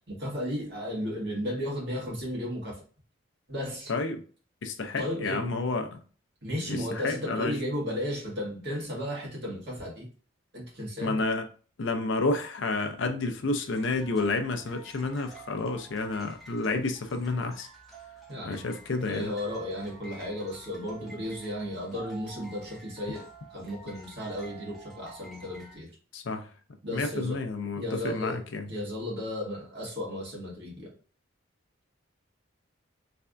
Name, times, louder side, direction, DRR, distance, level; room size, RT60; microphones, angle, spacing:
voice 1, 0.1-2.8 3.5-3.9 5.0-5.5 6.4-10.1 10.5-11.2 18.3-18.6 19.0-23.2 23.5-25.9 26.8-27.4 27.7-28.4 28.7-30.9, equal, 55° right, 1.8 m, -34 dB
voice 2, 3.9-4.2 4.6-6.0 6.7-7.6 11.0-11.5 11.8-17.7 18.4-19.3 26.1-26.5 26.9-28.6, left 3 dB, 60° left, 0.5 m, -30 dB
sound 1, 13.7-25.7, right 3 dB, ahead, 0.6 m, -50 dB
3.4 x 3.3 x 2.5 m
head